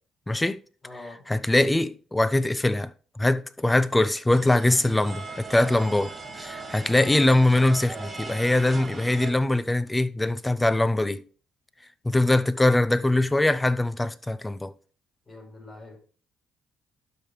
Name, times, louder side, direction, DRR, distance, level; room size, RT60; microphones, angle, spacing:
voice 1, 0.3-0.6 1.3-2.9 3.2-6.1 6.4-11.2 12.0-14.7, left 2 dB, 15° left, 0.6 m, -22 dB
voice 2, 0.8-1.2 15.3-16.0, left 2 dB, 30° left, 4.6 m, -44 dB
sound 1, 4.3-9.3, right 3 dB, 25° right, 2.2 m, -39 dB
12.0 x 5.1 x 3.2 m
supercardioid pair, 75°, 0 cm